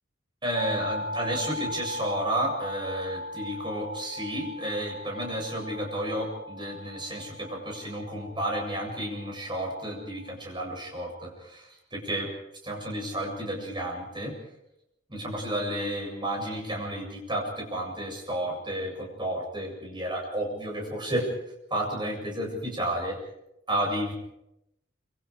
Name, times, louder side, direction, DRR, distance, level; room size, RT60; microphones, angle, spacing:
voice 1, 0.4-12.3 12.6-14.3 15.1-21.3 21.7-23.2 23.7-24.1, right 1 dB, 25° right, 0 dB, 7.7 m, -32 dB
sound 1, 0.5-10.3, left 1 dB, 40° right, 2.4 m, -39 dB
26.5 x 26.5 x 5.0 m, 0.83 s
head